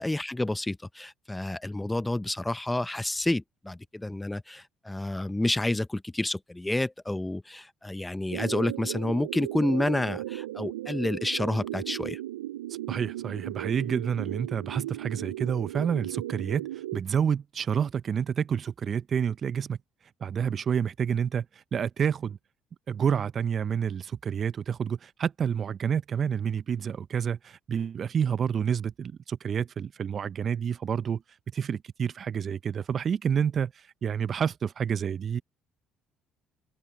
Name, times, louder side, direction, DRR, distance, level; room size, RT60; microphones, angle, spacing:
voice 1, 0.0-12.2, left 1 dB, 10° left, 1.1 m, -29 dB
sound 1, 8.3-17.0, right 14 dB, 80° right, 0.7 m, -36 dB
voice 2, 12.9-19.8 20.2-21.5 21.7-22.4 22.9-31.2 31.5-35.4, right 7 dB, 45° right, 0.9 m, -29 dB
hypercardioid pair, 55°, 0 cm